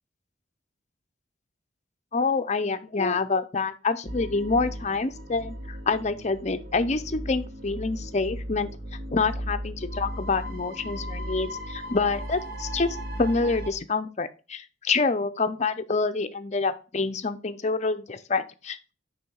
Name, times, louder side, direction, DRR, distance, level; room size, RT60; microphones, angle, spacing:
voice 1, 2.1-8.7 9.1-18.9, left 4 dB, 35° left, 10 dB, 0.6 m, -27 dB
sound 1, 4.1-13.7, equal, 50° right, 0.9 m, -36 dB
6.5 x 5.6 x 4.6 m, 0.34 s
head